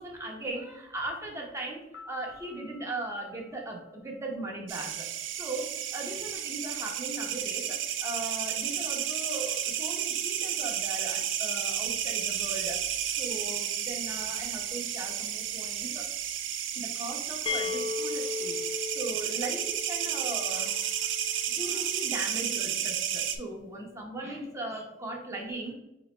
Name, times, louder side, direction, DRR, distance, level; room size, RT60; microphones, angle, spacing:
voice 1, 0.0-1.8 2.0-5.1 5.4-12.8 13.1-16.0 16.7-25.7, right 2 dB, 15° right, -1 dB, 0.9 m, -38 dB
Piano, 1.9-4.5, left 4 dB, 70° left, 0.9 m, -52 dB
sound 1, 4.7-23.4, right 10 dB, 80° right, 0.4 m, -32 dB
sound 2, 17.5-21.2, left 6 dB, 30° left, 0.4 m, -36 dB
4.8 x 3.0 x 3.2 m, 0.92 s
head